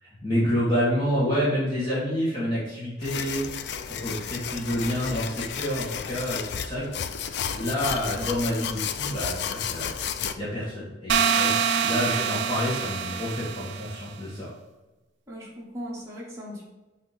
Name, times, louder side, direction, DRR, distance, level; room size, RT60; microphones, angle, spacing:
voice 1, 0.0-3.5 3.9-6.9 7.5-11.5 11.8-14.5, equal, 25° left, -9 dB, 1.3 m, -28 dB
sound 1, 3.0-10.3, left 8 dB, 65° left, 0.4 m, -32 dB
sound 2, 11.1-14.0, right 7 dB, 75° right, 0.4 m, -25 dB
voice 2, 15.3-16.6, equal, 15° right, -5 dB, 1.2 m, -38 dB
6.1 x 2.9 x 5.6 m, 1.1 s
head